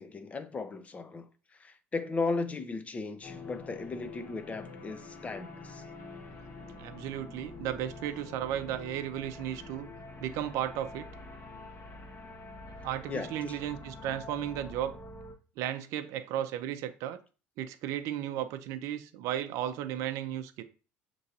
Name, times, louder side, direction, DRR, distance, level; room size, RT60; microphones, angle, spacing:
voice 1, 0.0-5.8 13.1-13.5, left 3 dB, 25° left, 0.6 m, -36 dB
sound 1, 3.2-15.3, left 3 dB, 45° left, 1.0 m, -46 dB
voice 2, 6.8-9.9 10.2-11.1 12.8-15.0 15.6-17.2 17.6-20.6, right 11 dB, 75° right, 0.5 m, -34 dB
6.5 x 3.0 x 2.7 m
supercardioid pair, 90°, 5 cm